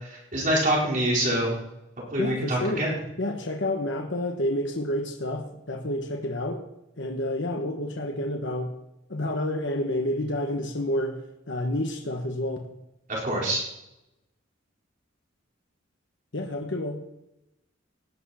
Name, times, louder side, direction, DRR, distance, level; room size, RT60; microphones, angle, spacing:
voice 1, 0.1-1.5 2.1-2.9 13.1-13.6, right 1 dB, 45° right, -4 dB, 4.5 m, -25 dB
voice 2, 2.2-2.9 3.2-6.6 7.0-8.7 9.1-12.7 16.3-17.0, left 1 dB, 65° left, 3 dB, 1.3 m, -29 dB
17.5 x 10.0 x 4.3 m, 0.89 s
head